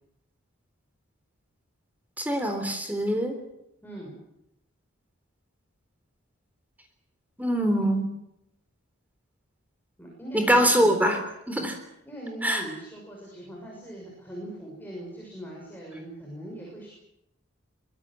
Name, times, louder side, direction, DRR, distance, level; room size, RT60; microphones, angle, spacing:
voice 1, 2.2-3.4 7.4-8.1 10.3-11.2 11.5-11.8 12.4-12.6, equal, 5° right, 5 dB, 3.7 m, -23 dB
voice 2, 3.8-4.2 10.0-11.1 12.0-16.9, right 1 dB, 10° left, -2 dB, 6.5 m, -40 dB
24.0 x 21.5 x 7.8 m, 0.82 s
head